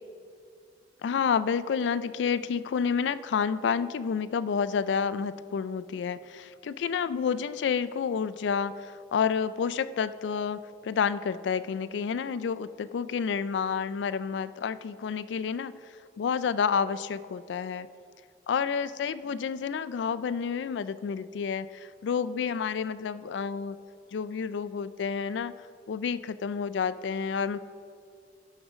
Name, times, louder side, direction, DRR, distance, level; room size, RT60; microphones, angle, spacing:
voice 1, 1.0-15.7 16.2-17.9 18.5-23.8 24.1-25.5 25.9-27.6, left 6 dB, 80° left, 16 dB, 0.3 m, -29 dB
12.0 x 6.2 x 5.0 m, 2.3 s
head